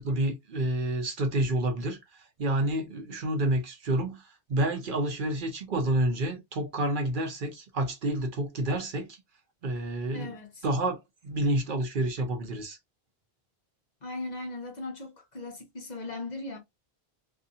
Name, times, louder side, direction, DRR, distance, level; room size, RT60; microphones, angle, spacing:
voice 1, 0.0-4.2 4.5-9.2 9.6-10.3 10.6-12.8, right 1 dB, 60° right, 0.7 m, -29 dB
voice 2, 10.1-10.7 14.0-16.6, left 2 dB, 50° left, 0.7 m, -38 dB
2.6 x 2.3 x 2.3 m
omnidirectional pair, 1.1 m